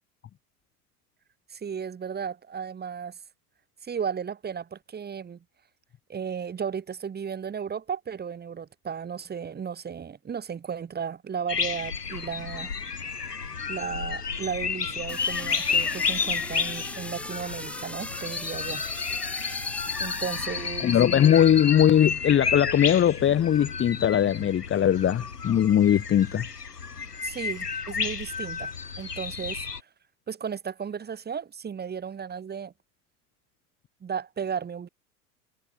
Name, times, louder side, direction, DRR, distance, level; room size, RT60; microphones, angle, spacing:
voice 1, 1.5-3.2 3.8-5.4 6.1-12.7 13.7-18.8 20.0-21.0 27.2-28.7 29.0-29.6 30.3-32.7 34.0-34.9, right 7 dB, 20° right, 3.2 m, -34 dB
sound 1, 11.5-29.8, left 5 dB, 85° left, 3.4 m, -31 dB
sound 2, 15.1-21.3, left 1 dB, 5° left, 2.7 m, -39 dB
voice 2, 20.8-26.5, left 10 dB, 25° left, 2.0 m, -20 dB
figure-of-eight pair, 90°, 46 cm